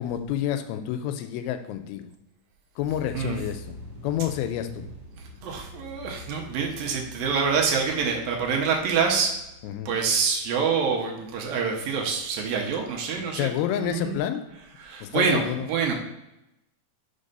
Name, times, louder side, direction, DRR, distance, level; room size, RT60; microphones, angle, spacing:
voice 1, 0.0-2.1 2.8-3.8 4.0-4.9 9.6-9.9 13.2-14.5 15.0-15.7, left 11 dB, 85° left, 8 dB, 2.4 m, -29 dB
sound 1, 2.8-10.5, left 1 dB, 45° right, 2.6 m, -44 dB
voice 2, 5.4-9.3 9.9-13.5 13.8-14.1 14.8-15.9, right 5 dB, 75° right, 1 dB, 2.4 m, -26 dB
5.3 x 4.3 x 5.3 m, 0.90 s
omnidirectional pair, 4.4 m